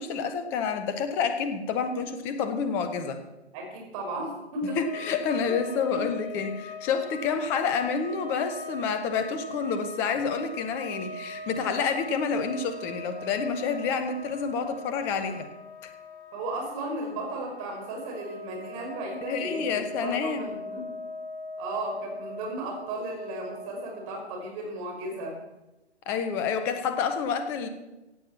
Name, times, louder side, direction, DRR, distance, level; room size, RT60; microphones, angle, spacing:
voice 1, 0.0-3.2 4.8-15.5 15.8-15.9 19.3-20.4 26.1-27.7, left 6 dB, 5° left, 9 dB, 0.5 m, -29 dB
voice 2, 3.5-4.8 5.7-6.4 16.3-20.9 21.6-25.4, right 1 dB, 30° right, 1 dB, 5.6 m, -35 dB
sound 1, 4.6-24.3, left 1 dB, 30° left, 2.9 m, -41 dB
17.0 x 8.3 x 7.2 m, 1.0 s
figure-of-eight pair, 130°, 34 cm